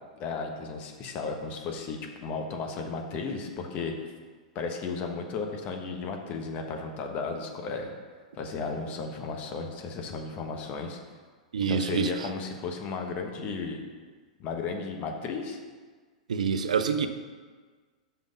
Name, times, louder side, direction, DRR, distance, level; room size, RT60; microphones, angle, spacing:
voice 1, 0.2-3.9 4.5-7.9 8.3-11.0 11.7-13.8 14.4-15.6, left 4 dB, 40° left, 3 dB, 1.2 m, -34 dB
voice 2, 11.5-12.3 16.3-17.1, right 6 dB, 75° right, 9 dB, 0.6 m, -26 dB
5.8 x 5.4 x 6.8 m, 1.5 s
hypercardioid pair, 100°, 4 cm